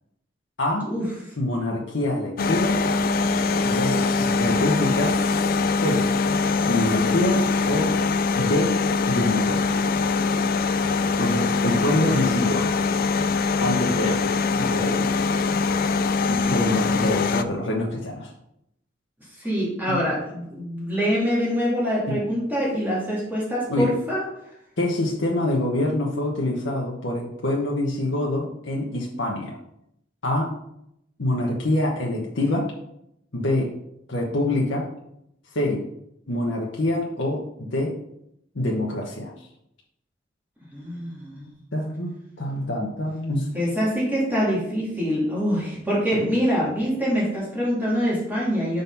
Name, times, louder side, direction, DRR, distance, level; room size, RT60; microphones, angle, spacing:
voice 1, 1.4-2.8 3.6-5.2 5.8-6.1 6.7-7.9 8.3-8.8 9.1-9.8 11.2-12.8 13.6-15.1 16.2-18.3 19.9-20.0 22.1-22.2 23.7-23.9 24.8-29.6 30.2-30.6 31.2-32.7 33.3-33.7 34.1-34.9 35.5-35.8 36.3-38.0 38.5-39.3 41.7-43.5 46.1-46.4, left 1 dB, 75° left, -2 dB, 1.0 m, -25 dB
sound 1, 2.4-17.4, left 4 dB, 50° left, 0.4 m, -23 dB
voice 2, 19.4-24.2 40.7-41.4 43.5-48.8, equal, 10° right, -7 dB, 2.2 m, -25 dB
5.6 x 4.0 x 5.3 m, 0.78 s
head